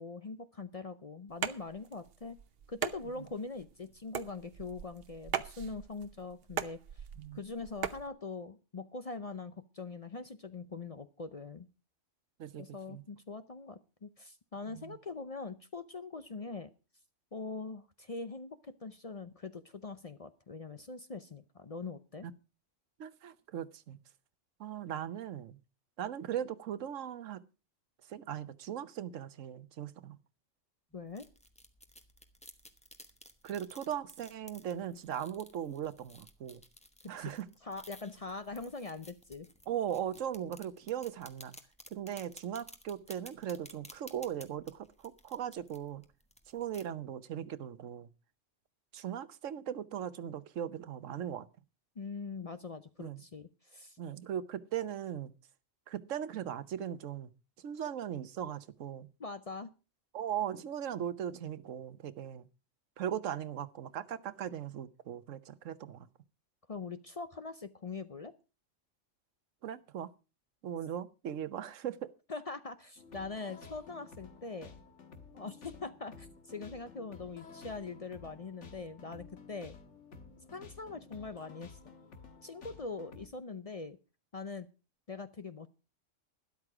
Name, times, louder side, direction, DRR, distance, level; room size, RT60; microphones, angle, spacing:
voice 1, 0.0-2.4 2.7-7.1 7.3-11.7 12.6-16.7 17.3-22.3 30.9-31.3 37.0-37.3 37.6-39.5 52.0-54.0 59.2-59.7 66.7-68.3 72.3-74.8 75.3-79.7 80.5-81.8 82.4-84.0 84.3-84.7 85.1-85.7, left 4 dB, 40° left, 0.6 m, -43 dB
sound 1, 1.3-8.1, right 8 dB, 55° right, 0.9 m, -40 dB
voice 2, 12.4-13.0 14.7-15.0 22.2-22.3 23.0-24.0 24.6-25.6 26.0-27.4 28.1-30.2 33.4-36.6 37.1-37.5 39.7-41.6 41.9-46.0 46.5-48.1 48.9-51.5 53.0-53.2 54.0-55.3 55.9-57.3 57.6-59.1 60.1-62.5 63.0-66.1 69.6-70.1 70.6-72.0, right 9 dB, 90° right, 1.2 m, -39 dB
sound 2, 30.9-46.8, equal, 5° left, 1.1 m, -56 dB
sound 3, 73.0-83.3, left 4 dB, 70° left, 1.7 m, -53 dB
12.5 x 11.0 x 4.8 m
omnidirectional pair, 1.3 m